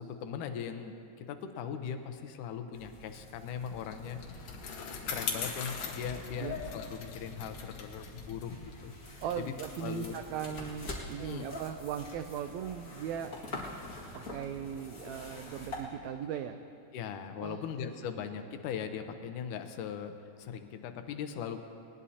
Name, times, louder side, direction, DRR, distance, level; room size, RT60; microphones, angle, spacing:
voice 1, 0.0-8.5 8.8-9.0 9.4-9.5 9.8-10.2 11.2-11.5 16.9-20.1 20.4-21.6, left 7 dB, 80° left, 7 dB, 2.3 m, -40 dB
sound 1, 2.7-15.8, left 2 dB, 30° left, 1.8 m, -46 dB
Bicycle, 3.5-10.2, left 5 dB, 60° left, 2.3 m, -41 dB
voice 2, 9.2-13.4 14.1-16.6 17.4-17.6, right 9 dB, 90° right, 8 dB, 1.5 m, -38 dB
20.0 x 19.5 x 2.8 m, 2.6 s
omnidirectional pair, 3.8 m